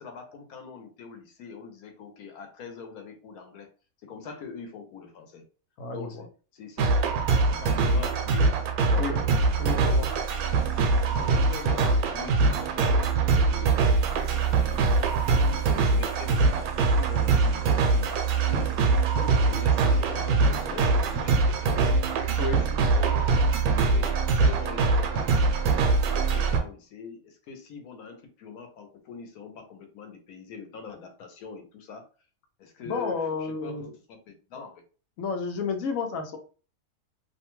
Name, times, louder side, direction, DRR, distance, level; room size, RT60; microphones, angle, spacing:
voice 1, 0.0-3.7 4.0-5.4 5.9-7.0 7.4-9.3 9.9-10.2 10.7-10.9 11.2-14.9 15.3-21.9 22.7-23.5 23.8-25.3 25.8-32.1 32.6-33.8 34.1-34.8, left 5 dB, 85° left, 6 dB, 1.2 m, -43 dB
voice 2, 5.8-6.3 9.0-9.2 9.6-10.1 22.4-22.7 32.8-33.9 35.2-36.4, left 4 dB, 70° left, 4 dB, 1.0 m, -31 dB
sound 1, 6.8-26.6, right 4 dB, 85° right, 1.1 m, -23 dB
2.8 x 2.2 x 3.0 m, 0.37 s
omnidirectional pair, 1.5 m